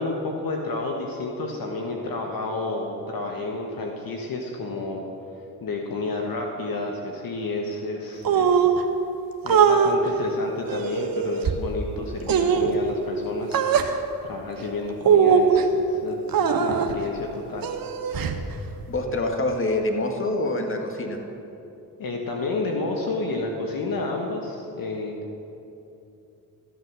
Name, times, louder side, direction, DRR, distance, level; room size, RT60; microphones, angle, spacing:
voice 1, 0.0-5.1 5.6-8.8 9.4-16.2 16.6-17.7 22.0-25.2, left 3 dB, 55° left, 1 dB, 1.5 m, -30 dB
sound 1, 8.2-8.8 9.5-9.9 10.7-11.5 12.3-12.7 13.5-13.9 15.0-15.6 16.3-16.9 17.6-18.4, right 7 dB, 55° right, 1.2 m, -20 dB
voice 2, 18.9-21.2, left 2 dB, 30° left, 3 dB, 1.9 m, -26 dB
13.5 x 8.1 x 6.2 m, 2.9 s
hypercardioid pair, 50°, 42 cm